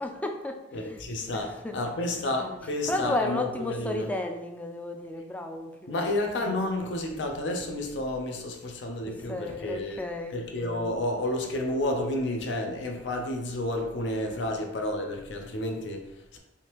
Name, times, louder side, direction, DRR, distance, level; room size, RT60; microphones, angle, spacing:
voice 1, 0.0-1.0 1.3-1.8 2.4-2.6 2.9-6.1 9.0-10.4 14.4-14.6, left 1 dB, 10° left, 4 dB, 0.3 m, -33 dB
voice 2, 0.7-4.1 5.9-10.0 10.3-16.4, left 1 dB, 80° left, 3 dB, 0.6 m, -31 dB
3.5 x 2.7 x 2.9 m, 0.92 s
head